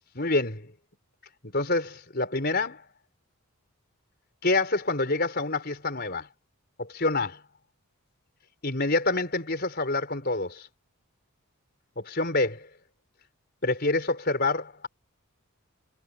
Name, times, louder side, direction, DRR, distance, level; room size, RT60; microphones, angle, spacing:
voice 1, 0.1-0.7 1.4-2.8 4.4-6.3 6.8-7.4 8.6-10.7 12.0-12.7 13.6-14.9, left 2 dB, 45° left, 4.7 m, -27 dB
head